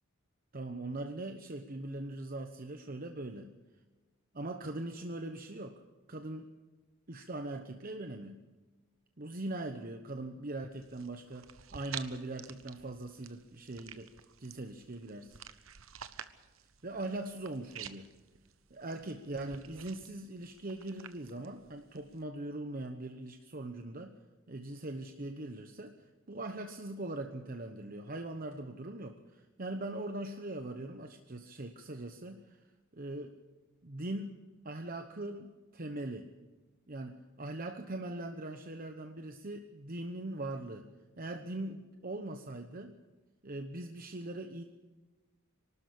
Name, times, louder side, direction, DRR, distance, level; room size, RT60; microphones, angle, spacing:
voice 1, 0.5-3.5 4.3-5.8 6.1-6.5 7.1-8.5 9.2-14.1 14.4-15.4 16.8-18.1 18.7-24.2 24.5-25.9 26.3-32.6 32.9-33.3 33.8-34.4 34.6-36.3 36.9-40.9 41.2-43.0 43.4-44.6, right 2 dB, 45° right, 6 dB, 1.0 m, -41 dB
sound 1, 10.7-22.2, right 8 dB, 85° right, 1.1 m, -50 dB
24.5 x 12.5 x 8.5 m, 1.2 s
head